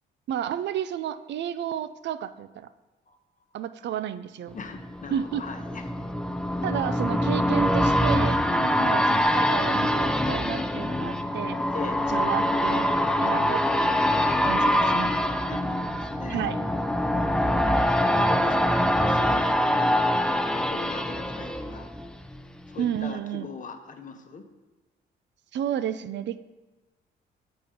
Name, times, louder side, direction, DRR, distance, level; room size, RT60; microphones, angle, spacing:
voice 1, 0.3-2.7 3.5-4.6 5.1-5.4 6.6-8.4 8.8-11.6 12.1-12.9 13.2-14.2 14.4-15.1 16.3-16.6 22.8-23.5 25.5-26.4, right 10 dB, 65° right, 12 dB, 0.4 m, -31 dB
voice 2, 4.5-5.9 8.5-9.0 11.7-12.0 14.7-14.9 15.5-17.2 18.0-21.9 22.7-24.4, left 4 dB, 40° left, 6 dB, 0.9 m, -40 dB
sound 1, 4.6-22.4 22.8-22.9, equal, 5° left, 0.4 m, -24 dB
7.9 x 4.3 x 5.0 m, 1.2 s
cardioid pair, 90°, 20 cm